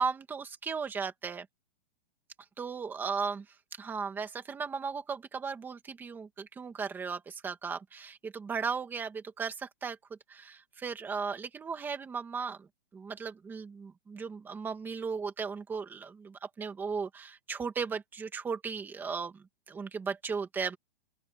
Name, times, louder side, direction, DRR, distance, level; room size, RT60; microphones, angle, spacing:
voice 1, 0.0-1.5 2.6-3.5 3.8-10.0 10.3-20.8, right 5 dB, 5° right, 2.1 m, -36 dB
open air
hypercardioid pair, 180°, 30 cm